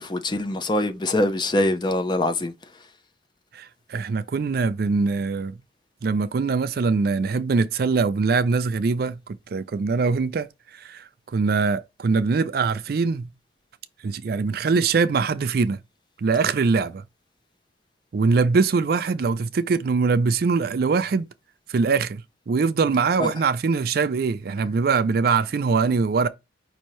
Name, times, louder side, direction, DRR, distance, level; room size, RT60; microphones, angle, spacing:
voice 1, 0.0-2.5 23.2-23.3, left 1 dB, 25° left, 0.5 m, -23 dB
voice 2, 3.5-5.6 6.0-10.5 10.7-11.0 11.3-13.3 14.0-15.8 16.2-17.0 18.1-21.3 21.7-26.3, right 4 dB, 55° right, 0.4 m, -22 dB
5.3 x 2.7 x 3.0 m
head